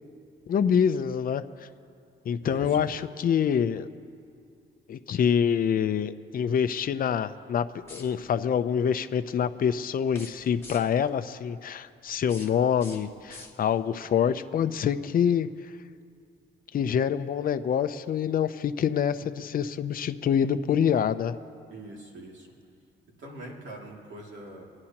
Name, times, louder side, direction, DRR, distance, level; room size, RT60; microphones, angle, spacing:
voice 1, 0.5-1.4 2.3-3.9 4.9-7.6 7.9-15.5 16.7-21.3, left 8 dB, 45° left, 10 dB, 0.6 m, -26 dB
voice 2, 2.4-2.8 21.7-22.5 23.2-24.6, right 2 dB, 70° right, -2 dB, 2.5 m, -42 dB
sound 1, 7.8-8.5 10.0-11.1 12.1-13.9, left 2 dB, 15° left, 2.0 m, -48 dB
29.0 x 9.7 x 2.9 m, 2.5 s
cardioid pair, 90°, 20 cm